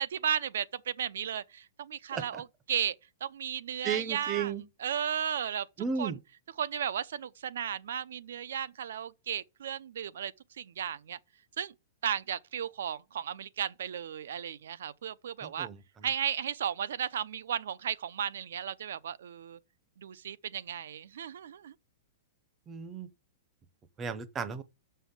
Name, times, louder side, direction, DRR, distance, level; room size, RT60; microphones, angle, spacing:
voice 1, 0.0-3.0 3.2-4.5 4.8-5.7 6.0-6.1 6.6-11.2 11.6-11.7 12.0-15.7 16.0-19.6 20.0-21.7, right 9 dB, 75° right, 0.6 m, -34 dB
voice 2, 2.1-2.4 3.8-4.6 5.8-6.2 15.4-15.8 22.7-23.1 24.0-24.6, right 6 dB, 15° right, 0.6 m, -34 dB
7.1 x 5.6 x 7.1 m
supercardioid pair, 175°, 0 cm